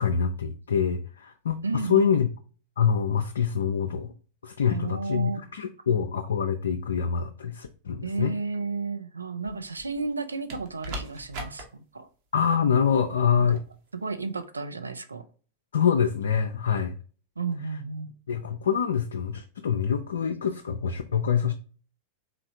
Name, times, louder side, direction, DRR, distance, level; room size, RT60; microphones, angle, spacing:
voice 1, 0.0-2.3 2.8-4.1 4.4-8.3 12.3-13.6 15.7-16.9 18.3-21.5, left 7 dB, 65° left, 0.3 m, -25 dB
voice 2, 1.6-2.2 4.7-5.4 8.0-11.7 11.9-12.1 13.3-13.4 14.0-15.2 17.4-18.2, right 4 dB, 80° right, 0.4 m, -32 dB
sound 1, 9.4-10.1 10.5-11.6 13.4-13.7, right 1 dB, 45° right, 1.0 m, -39 dB
3.9 x 3.2 x 2.7 m
figure-of-eight pair, 90°, 0 cm